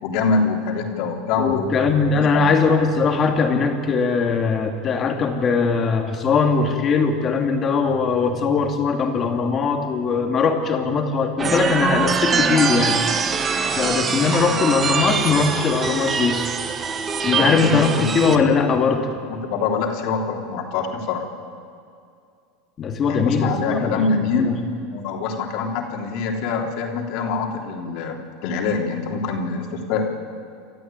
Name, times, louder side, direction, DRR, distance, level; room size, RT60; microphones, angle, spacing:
voice 1, 0.0-1.7 2.3-2.5 14.4-14.5 17.3-18.2 19.3-21.2 23.0-24.5 24.9-28.2 28.4-30.1, left 4 dB, 60° left, 2 dB, 3.4 m, -24 dB
voice 2, 1.4-13.0 13.8-16.4 17.2-19.1 22.8-24.0 24.4-24.5, left 5 dB, 30° left, 4 dB, 2.8 m, -20 dB
sound 1, 11.4-18.4, right 5 dB, 25° right, 1.5 m, -23 dB
28.0 x 14.0 x 9.1 m, 2.4 s
supercardioid pair, 125°, 0 cm